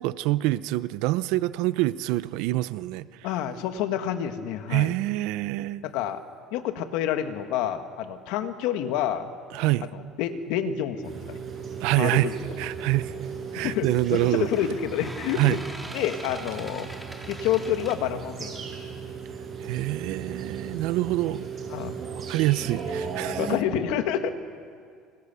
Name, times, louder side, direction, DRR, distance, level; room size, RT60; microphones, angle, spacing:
voice 1, 0.0-3.3 4.7-5.8 9.5-9.9 11.8-13.1 13.5-14.5 15.3-15.6 19.6-21.5 22.1-23.5, right 17 dB, 75° right, 0.8 m, -26 dB
voice 2, 3.2-4.9 5.8-6.2 6.5-9.3 9.9-11.4 11.9-12.4 13.6-15.6 15.9-16.9 17.3-18.6 20.6-20.9 21.7-21.9 23.4-24.3, left 9 dB, 75° left, 1.9 m, -28 dB
sound 1, 11.0-23.6, right 6 dB, 30° right, 6.8 m, -36 dB
sound 2, 12.8-13.1 14.3-18.0, right 1 dB, ahead, 3.1 m, -42 dB
30.0 x 24.5 x 7.0 m
cardioid pair, 140°, 0 cm